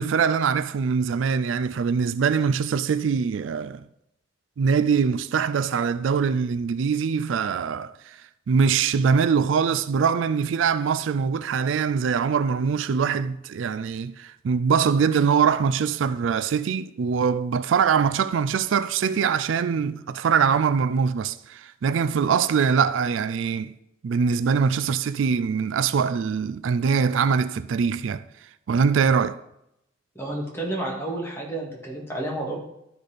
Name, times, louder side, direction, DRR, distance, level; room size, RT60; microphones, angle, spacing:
voice 1, 0.0-3.9 4.6-8.2 8.5-23.8 24.0-28.2 28.7-29.4, right 6 dB, 80° right, 0.4 m, -23 dB
voice 2, 30.2-32.6, right 1 dB, 15° left, 2.0 m, -30 dB
12.0 x 4.1 x 5.0 m
head